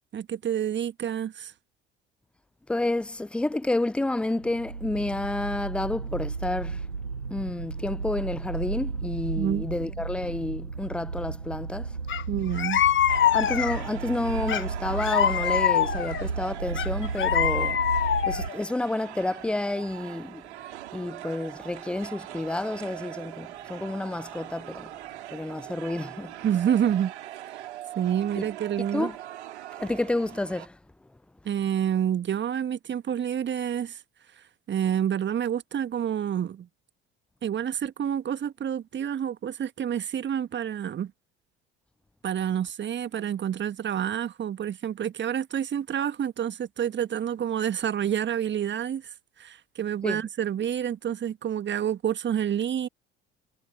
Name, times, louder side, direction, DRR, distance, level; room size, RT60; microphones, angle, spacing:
voice 1, 0.1-1.5 9.4-9.7 12.3-12.8 26.4-27.1 27.9-29.1 31.4-34.0 34.7-36.7 37.4-41.1 42.2-52.9, right 9 dB, 30° right, 1.6 m, -28 dB
voice 2, 2.7-6.8 7.3-11.9 13.3-17.8 18.2-20.4 20.9-24.9 25.3-26.3 28.4-28.5 28.9-29.2 29.8-30.8 50.0-50.2, left 2 dB, 5° left, 0.4 m, -30 dB
sound 1, 4.4-18.5, right 4 dB, 85° right, 2.0 m, -33 dB
sound 2, 12.1-12.2 12.6-13.9 14.5-16.2 16.8-18.5, left 10 dB, 35° left, 1.6 m, -24 dB
sound 3, 13.1-30.7, right 14 dB, 70° right, 3.3 m, -42 dB
figure-of-eight pair, 60°, 35 cm